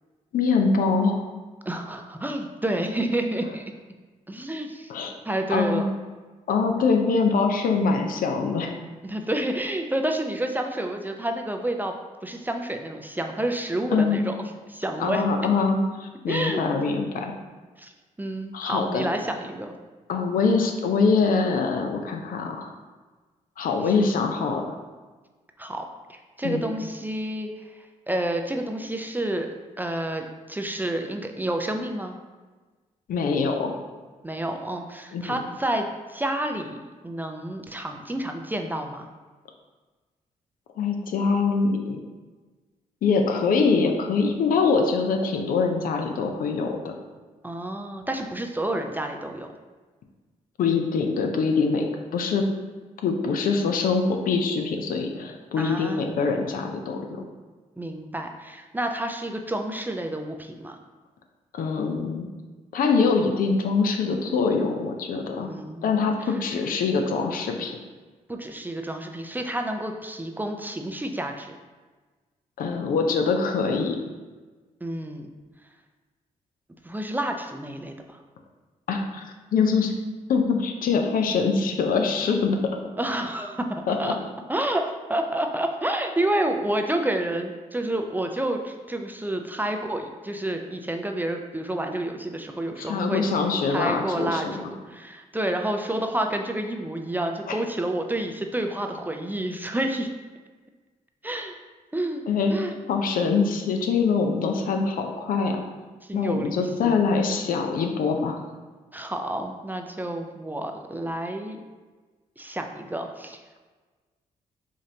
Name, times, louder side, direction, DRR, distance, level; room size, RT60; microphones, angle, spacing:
voice 1, 0.3-1.2 4.9-5.1 5.5-5.9 6.5-8.8 13.9-14.2 15.0-17.3 18.5-19.1 20.1-22.7 23.6-24.8 26.4-26.6 33.1-33.7 35.1-35.4 40.8-42.0 43.0-46.9 50.6-52.4 53.0-57.2 61.5-62.3 62.7-65.5 65.8-67.8 72.6-74.0 78.9-79.9 80.3-82.8 83.9-84.1 92.8-94.7 97.5-97.6 102.3-102.5 102.9-105.6 106.1-108.4, left 4 dB, 65° left, 3 dB, 0.5 m, -24 dB
voice 2, 1.7-3.6 4.3-4.9 5.3-5.9 9.0-11.9 12.2-14.3 14.7-15.3 16.3-17.1 17.8-17.9 18.2-19.7 23.8-23.9 25.6-27.8 28.1-29.5 29.8-32.2 34.2-36.8 37.0-39.1 47.4-49.5 55.6-56.1 57.8-60.8 65.4-65.9 68.3-71.5 74.8-75.3 76.8-78.2 83.0-84.2 84.5-93.2 93.7-100.1 101.2-101.6 101.9-102.2 102.5-102.8 106.1-107.0 108.9-111.6 112.4-113.4, right 1 dB, 10° right, 4 dB, 0.4 m, -29 dB
5.1 x 2.6 x 2.7 m, 1.3 s
supercardioid pair, 55°, 16 cm